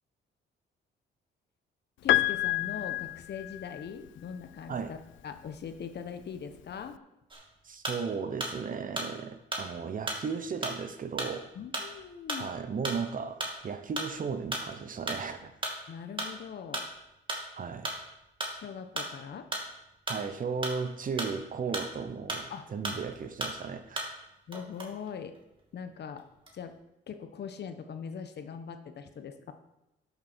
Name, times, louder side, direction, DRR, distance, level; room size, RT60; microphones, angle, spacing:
voice 1, 2.0-7.0 11.5-12.5 15.9-16.9 18.5-19.5 22.5-22.7 24.5-25.3 25.7-26.2 26.5-26.8 27.1-29.5, left 7 dB, 60° left, 8 dB, 1.2 m, -41 dB
Piano, 2.1-4.1 5.4-5.5, left 17 dB, 75° left, 0.4 m, -28 dB
sound 1, 7.3-8.6 9.0-22.6 22.8-24.3 24.5-25.8 26.2-26.8, right 1 dB, 25° right, 2.4 m, -36 dB
voice 2, 7.6-11.5 12.4-15.5 17.6-17.9 20.1-24.2, right 5 dB, 45° right, 10 dB, 1.0 m, -35 dB
12.0 x 7.0 x 4.5 m, 0.92 s
cardioid pair, 90°, 20 cm